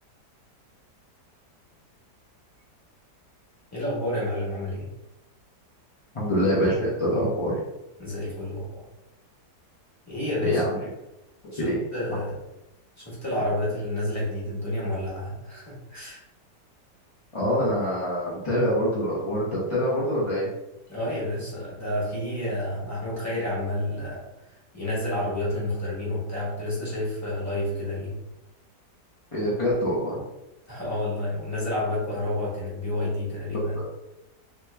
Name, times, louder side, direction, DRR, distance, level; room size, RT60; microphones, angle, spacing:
voice 1, 3.7-4.9 8.0-8.8 10.1-10.6 11.5-12.3 13.0-16.2 20.9-24.2 24.7-28.2 30.7-33.8, left 1 dB, 10° left, -7 dB, 1.3 m, -30 dB
voice 2, 6.1-7.6 10.4-10.8 11.6-11.8 17.3-20.5 29.3-30.2 33.8-33.9, equal, 45° left, -7 dB, 0.4 m, -25 dB
3.0 x 2.9 x 3.3 m, 0.96 s
omnidirectional pair, 1.8 m